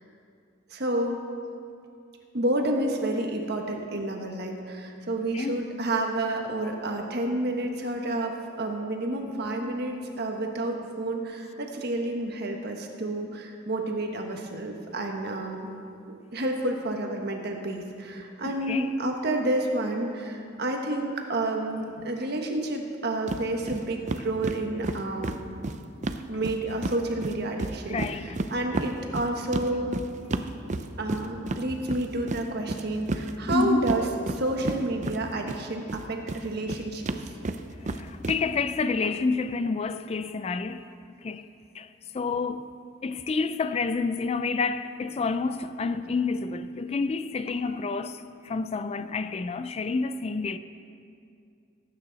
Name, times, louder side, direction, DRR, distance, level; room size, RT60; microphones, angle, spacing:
voice 1, 0.7-1.2 2.3-15.7 16.1-25.3 26.3-30.0 31.0-34.0 34.3-37.1, right 1 dB, 55° right, 1.4 m, -30 dB
voice 2, 18.4-18.9 27.9-28.4 33.5-33.9 37.8-40.9 41.2-41.5 41.7-42.7 43.0-50.6, left 4 dB, 30° left, 0.3 m, -29 dB
sound 1, 23.3-23.4 23.7-23.8 24.1-27.0 27.2-35.6 35.9-38.4, right 2 dB, 40° right, 0.5 m, -31 dB
19.0 x 9.0 x 4.1 m
head